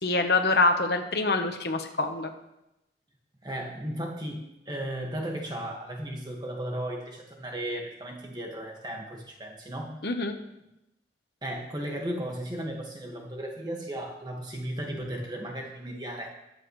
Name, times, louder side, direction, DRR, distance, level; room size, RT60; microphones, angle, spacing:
voice 1, 0.0-2.3 10.0-10.4, left 3 dB, 60° left, 5 dB, 1.2 m, -25 dB
voice 2, 3.4-9.9 11.4-16.3, right 1 dB, 25° right, 0 dB, 1.9 m, -35 dB
22.0 x 8.5 x 3.3 m, 0.88 s
head